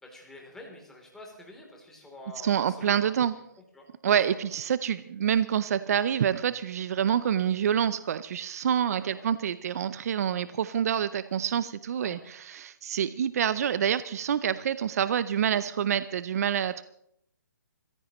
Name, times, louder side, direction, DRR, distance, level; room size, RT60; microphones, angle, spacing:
voice 1, 0.0-3.3 3.7-3.9 4.3-4.5 8.9-9.3 12.0-12.3, left 2 dB, 5° left, -1 dB, 3.2 m, -47 dB
voice 2, 2.4-3.3 4.0-16.8, right 9 dB, 55° right, 15 dB, 0.6 m, -27 dB
26.0 x 15.5 x 3.1 m, 0.73 s
hypercardioid pair, 150°, 10 cm